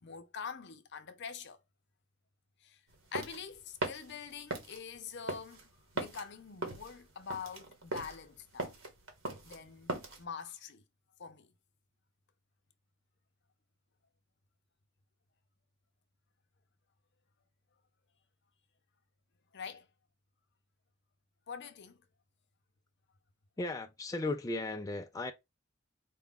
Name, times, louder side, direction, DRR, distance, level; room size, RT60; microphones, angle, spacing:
voice 1, 0.0-1.6 2.6-2.8 3.1-5.6 5.9-8.8 9.4-10.8 11.2-11.5 19.5-19.9 21.5-22.0, left 6 dB, 55° left, 0.6 m, -45 dB
sound 1, 2.9-10.2, right 2 dB, 70° right, 1.4 m, -40 dB
voice 2, 23.6-25.3, left 2 dB, 15° left, 0.4 m, -36 dB
4.4 x 2.4 x 3.7 m
head